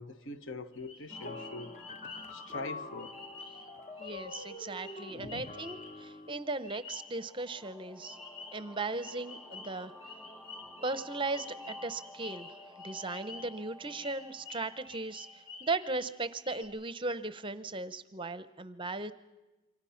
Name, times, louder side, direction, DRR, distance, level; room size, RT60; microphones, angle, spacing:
voice 1, 0.0-1.8 2.3-3.2 5.1-5.5, left 2 dB, 60° left, 1.2 m, -43 dB
sound 1, 0.7-2.5 3.0-3.7 4.0-6.0 6.6-7.2 8.0-8.7 9.0-13.6 13.9-16.1 16.4-16.6, left 4 dB, 85° left, 5.8 m, -49 dB
sound 2, 1.1-16.4, left 1 dB, 10° left, 2.0 m, -53 dB
sound 3, 1.2-6.4, left 3 dB, 35° left, 1.0 m, -45 dB
voice 2, 4.0-8.2 8.5-9.9 10.8-12.5 12.8-15.3 15.6-19.1, right 3 dB, 25° right, 0.7 m, -37 dB
28.0 x 24.0 x 5.8 m
head